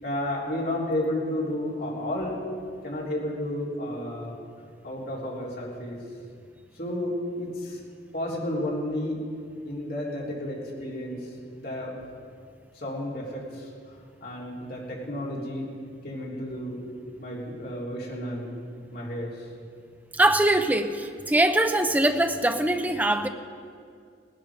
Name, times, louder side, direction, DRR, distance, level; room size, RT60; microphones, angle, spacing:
voice 1, 0.0-2.4 2.8-4.3 4.8-6.0 6.8-7.8 8.1-9.2 9.6-11.3 11.6-12.0 12.7-15.7 16.0-18.5 18.9-19.5, left 1 dB, 55° left, -4 dB, 3.8 m, -32 dB
voice 2, 20.2-23.3, right 1 dB, 10° right, 7 dB, 0.7 m, -22 dB
19.0 x 12.5 x 5.1 m, 2.3 s
head